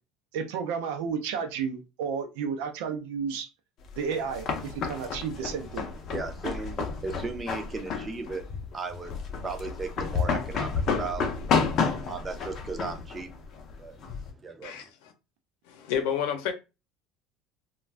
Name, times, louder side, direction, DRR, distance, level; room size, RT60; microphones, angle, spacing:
voice 1, 0.3-3.5 4.0-5.9, right 6 dB, 85° right, 0.6 m, -32 dB
sound 1, 3.9-14.3, left 5 dB, 35° left, 0.5 m, -31 dB
voice 2, 6.1-13.5 13.7-14.8, right 4 dB, 15° right, 0.4 m, -37 dB
voice 3, 14.6-15.1 15.7-16.5, left 8 dB, 75° left, 0.7 m, -30 dB
2.5 x 2.3 x 3.2 m
cardioid pair, 175°, 0 cm